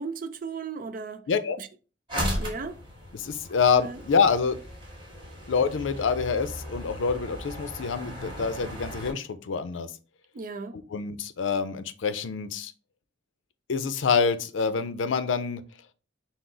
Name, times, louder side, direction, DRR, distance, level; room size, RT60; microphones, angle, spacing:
voice 1, 0.0-1.3 1.6-1.7 2.4-2.8 3.8-4.0 10.3-10.8, right 4 dB, 45° right, 0.4 m, -36 dB
sound 1, 2.1-9.1, equal, 25° right, 1.7 m, -36 dB
voice 2, 3.1-4.6 5.5-9.9 10.7-12.7 13.7-15.6, left 5 dB, 85° left, 0.5 m, -26 dB
5.9 x 2.0 x 3.7 m
head